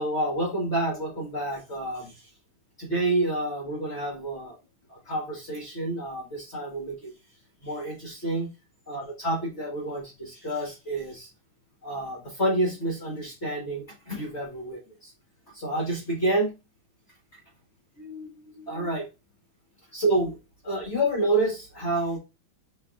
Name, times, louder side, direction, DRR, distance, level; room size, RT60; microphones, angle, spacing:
voice 1, 0.0-2.1 2.8-4.5 4.9-7.1 7.6-8.5 8.9-11.3 11.8-15.1 15.5-16.5 17.3-17.4 18.0-19.1 19.9-20.3 20.6-22.2, right 1 dB, 55° left, -3 dB, 0.7 m, -29 dB
7.2 x 3.2 x 2.4 m, 0.27 s
omnidirectional pair, 3.6 m